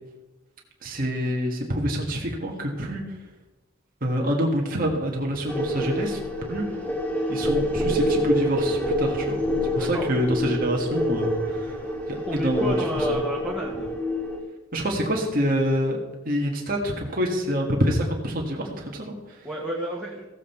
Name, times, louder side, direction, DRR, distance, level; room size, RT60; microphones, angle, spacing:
voice 1, 0.8-3.2 4.0-6.2 6.5-6.6 7.3-9.4 9.7-11.8 12.1-13.2 14.7-16.0 16.2-19.5, equal, 45° right, 0 dB, 1.7 m, -26 dB
sound 1, 5.5-14.4, equal, 5° left, 2.0 m, -26 dB
voice 2, 9.8-10.1 12.3-13.9 19.4-20.2, right 1 dB, 10° right, -5 dB, 1.6 m, -31 dB
16.0 x 7.6 x 4.4 m, 1.1 s
head